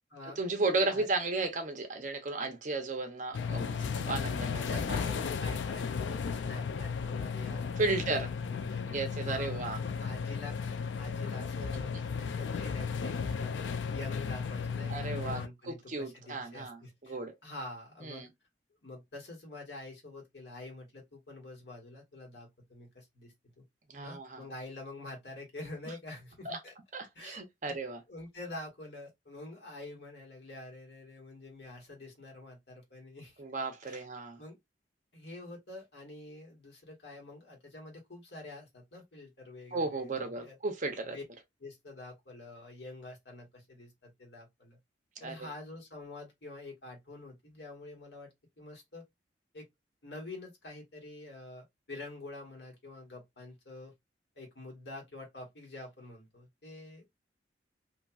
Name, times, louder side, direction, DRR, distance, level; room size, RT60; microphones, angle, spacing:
voice 1, 0.4-5.0 7.8-8.3 8.9-9.8 14.9-15.4 15.7-17.3 18.0-18.3 23.9-24.4 26.4-26.6 26.9-28.0 33.4-34.4 39.7-41.2 45.2-45.5, right 3 dB, 45° right, 0.7 m, -34 dB
sound 1, 3.3-15.5, left 5 dB, 90° left, 0.3 m, -35 dB
voice 2, 4.7-18.3 18.8-23.6 24.0-26.7 27.1-27.8 28.1-33.4 33.8-34.0 34.4-34.6 35.1-40.6 41.1-41.2 41.6-44.8 45.2-49.0 49.5-49.6 50.0-53.9 54.3-57.1, left 2 dB, 70° left, 1.5 m, -47 dB
2.8 x 2.7 x 2.3 m
head